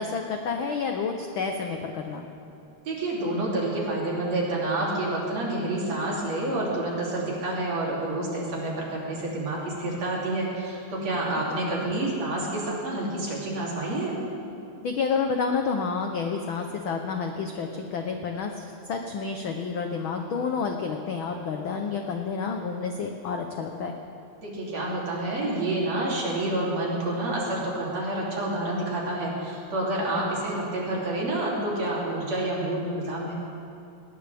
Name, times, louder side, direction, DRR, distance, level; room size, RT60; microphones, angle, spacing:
voice 1, 0.0-2.3 11.7-11.9 14.8-23.9 30.2-30.3, left 5 dB, 80° left, 4 dB, 1.1 m, -29 dB
voice 2, 2.9-14.2 24.4-33.4, right 1 dB, 60° right, -5 dB, 4.2 m, -28 dB
19.5 x 19.5 x 3.5 m, 2.6 s
omnidirectional pair, 3.5 m